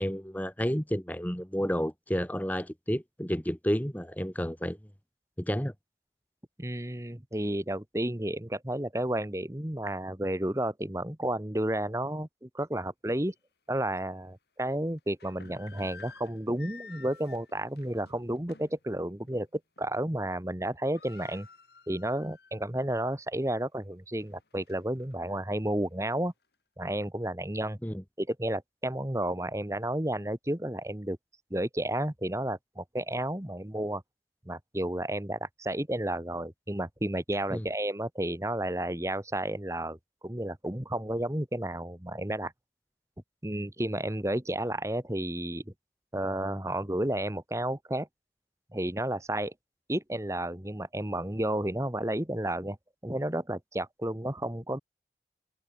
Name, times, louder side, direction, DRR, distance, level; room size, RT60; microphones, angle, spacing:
voice 1, 0.0-4.8 5.4-5.7 27.8-28.0 37.5-37.7, equal, 10° left, 1.7 m, -31 dB
voice 2, 6.6-13.3 13.7-21.5 21.9-26.3 26.8-27.8 28.2-31.2 31.5-34.0 34.4-40.0 40.2-42.5 43.4-45.6 46.1-48.1 48.7-49.5 49.9-52.8 53.0-54.8, right 1 dB, 15° right, 1.5 m, -32 dB
sound 1, 13.3-13.4 13.9-14.1 15.0-18.8 19.2-19.4 19.8-20.2 20.4-20.5 20.7-22.7 23.1-23.2 23.8-25.1, left 4 dB, 70° left, 7.7 m, -52 dB
open air
head